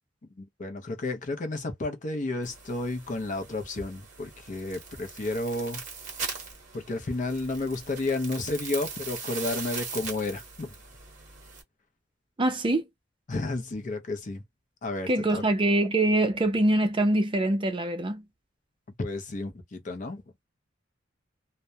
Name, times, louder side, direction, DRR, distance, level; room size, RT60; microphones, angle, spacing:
voice 1, 0.4-5.8 6.7-10.7 13.3-14.4 14.8-15.4 19.0-20.2, left 2 dB, 40° left, 0.5 m, -32 dB
sound 1, 2.4-11.6, right 5 dB, 45° right, 0.9 m, -40 dB
voice 2, 12.4-12.9 15.1-18.2, right 1 dB, 25° right, 0.5 m, -24 dB
2.1 x 2.1 x 2.7 m
head